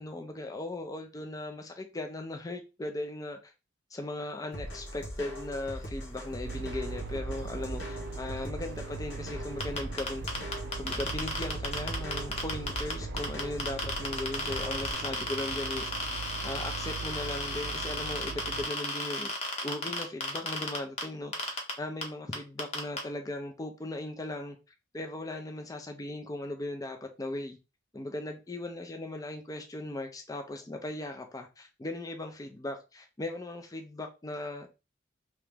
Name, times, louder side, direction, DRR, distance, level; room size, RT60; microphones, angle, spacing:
voice 1, 0.0-3.5 3.9-10.2 10.8-19.3 19.6-24.6 24.9-27.6 27.9-34.8, left 1 dB, 20° left, 0.4 m, -38 dB
sound 1, 4.5-14.9, equal, 65° left, 1.2 m, -40 dB
sound 2, 6.4-18.7, right 5 dB, 60° right, 0.3 m, -41 dB
sound 3, 9.6-12.9 13.2-21.0 21.3-21.7 22.0-22.1 22.3-23.0, left 2 dB, 35° left, 0.8 m, -33 dB
3.0 x 2.9 x 3.5 m
head